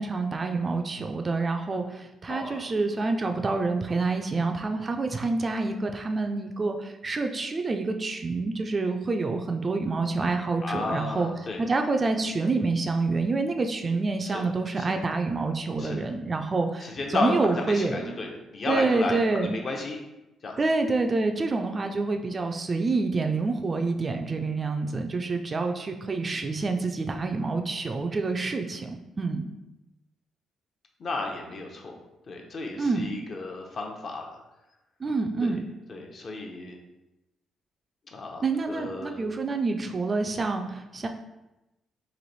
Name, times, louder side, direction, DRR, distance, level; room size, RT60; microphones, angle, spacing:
voice 1, 0.0-11.3 11.6-18.2 18.7-19.6 20.6-29.5 32.8-33.2 35.0-35.7 38.4-41.1, right 3 dB, 35° right, 5 dB, 0.3 m, -27 dB
voice 2, 2.3-2.6 10.6-11.6 14.2-14.4 14.8-14.9 15.8-16.0 16.8-19.2 19.5-20.0 20.4-20.5 31.0-32.0 32.3-34.4 35.4-35.6 35.9-36.8 38.1-39.2, left 3 dB, 45° left, 1 dB, 0.7 m, -33 dB
3.1 x 2.5 x 4.0 m, 0.97 s
cardioid pair, 90°, 0 cm